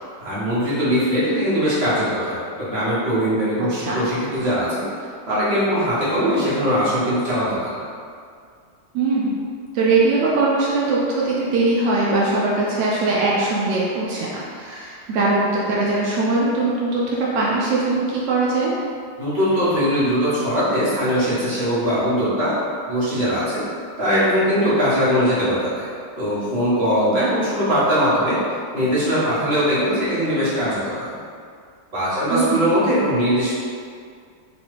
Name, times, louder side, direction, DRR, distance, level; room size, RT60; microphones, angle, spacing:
voice 1, 0.2-4.9 5.3-7.8 19.2-22.6 22.9-23.6 24.0-25.9 26.2-28.4 28.7-31.1 31.9-33.5, equal, 40° right, -11 dB, 1.3 m, -21 dB
voice 2, 8.9-9.4 9.7-18.7 27.2-27.3 32.3-32.6, right 3 dB, 80° right, -5 dB, 0.6 m, -21 dB
3.1 x 2.8 x 3.1 m, 2.2 s
omnidirectional pair, 1.8 m